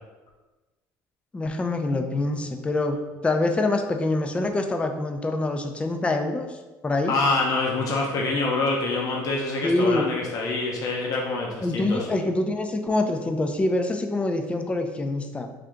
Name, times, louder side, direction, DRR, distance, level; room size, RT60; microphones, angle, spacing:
voice 1, 1.3-6.6 6.8-7.2 9.6-10.1 11.6-15.5, left 2 dB, 15° left, 5 dB, 0.4 m, -25 dB
voice 2, 7.0-12.1, left 3 dB, 50° left, -2 dB, 0.7 m, -26 dB
3.6 x 2.7 x 3.4 m, 1.2 s
cardioid pair, 105°, 8 cm